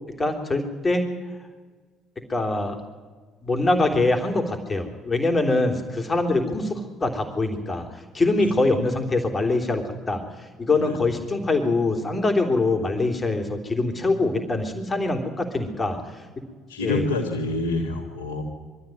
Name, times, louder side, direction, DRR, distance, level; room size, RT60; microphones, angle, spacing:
voice 1, 0.2-1.1 2.3-2.8 3.4-10.2 10.6-16.2 16.8-17.0, left 2 dB, 25° left, 4 dB, 3.4 m, -24 dB
voice 2, 16.7-18.4, left 2 dB, 85° left, -4 dB, 2.1 m, -27 dB
22.5 x 13.5 x 9.3 m, 1.5 s
hypercardioid pair, 55°, 0 cm